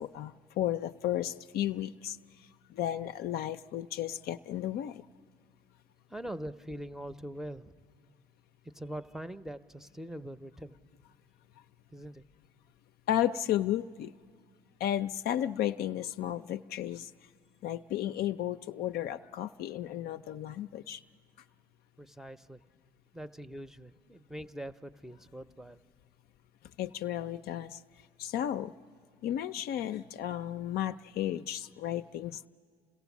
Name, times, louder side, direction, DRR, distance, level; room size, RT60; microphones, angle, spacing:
voice 1, 0.0-5.0 13.1-14.1 14.8-17.1 17.6-21.0 26.8-27.8 28.2-28.7 29.2-32.5, left 11 dB, 60° left, 9 dB, 0.5 m, -33 dB
voice 2, 6.1-7.8 8.6-10.8 11.9-12.2 22.0-22.6 23.1-25.8, right 1 dB, ahead, 12 dB, 0.6 m, -43 dB
29.0 x 16.0 x 7.2 m, 2.1 s
hypercardioid pair, 65°, 18 cm